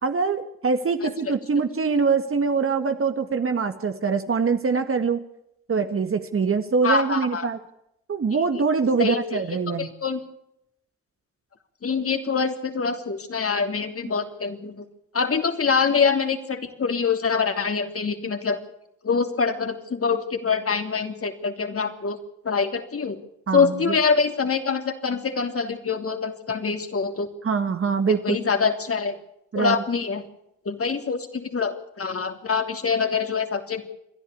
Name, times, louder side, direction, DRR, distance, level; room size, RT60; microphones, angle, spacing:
voice 1, 0.0-5.2 5.7-7.6 8.1-9.9 23.5-24.0 27.4-28.4 29.5-29.8, right 5 dB, 45° right, 8 dB, 1.8 m, -24 dB
voice 2, 1.0-1.3 6.8-7.5 9.0-9.4 9.8-10.2 11.8-14.8 15.1-18.6 19.0-22.2 22.4-23.2 23.5-27.3 28.1-29.1 29.5-30.2 30.6-33.9, left 5 dB, 50° left, 6 dB, 3.2 m, -25 dB
27.5 x 11.0 x 8.6 m, 0.80 s
supercardioid pair, 50°, 30 cm